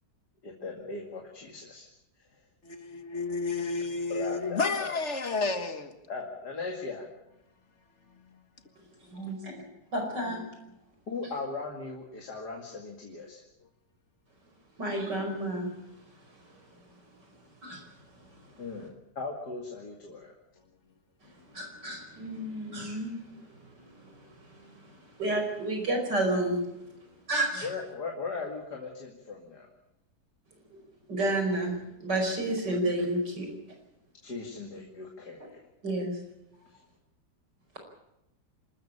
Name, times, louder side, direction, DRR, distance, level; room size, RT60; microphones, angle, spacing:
voice 1, 0.4-1.9 4.1-5.0 6.1-7.1 11.1-13.4 18.6-20.3 27.6-29.7 32.7-32.8 34.2-35.6 36.7-36.8, left 4 dB, 70° left, 2.9 m, -38 dB
voice 2, 2.7-5.9 8.3-8.4, left 3 dB, 45° left, 1.8 m, -31 dB
voice 3, 9.1-9.6 9.9-10.4 14.8-15.7 17.6-17.8 21.5-23.2 24.6-24.7 25.2-26.6 27.3-27.7 31.1-33.5 35.8-36.2, right 1 dB, 80° right, 5.8 m, -30 dB
26.5 x 13.5 x 8.7 m
omnidirectional pair, 1.8 m